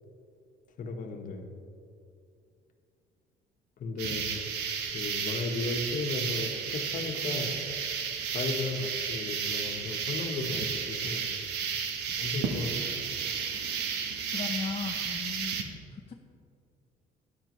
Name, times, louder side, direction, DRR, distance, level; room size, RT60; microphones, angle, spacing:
voice 1, 0.8-1.4 3.8-4.3 4.9-7.6 8.3-11.2 12.2-13.0, left 3 dB, 50° left, 4 dB, 1.3 m, -35 dB
sound 1, 4.0-15.6, right 6 dB, 85° right, 1.1 m, -33 dB
voice 2, 14.3-15.6 15.9-16.1, left 5 dB, 35° left, 2 dB, 0.6 m, -36 dB
13.0 x 10.0 x 3.2 m, 2.5 s
cardioid pair, 110°, 17 cm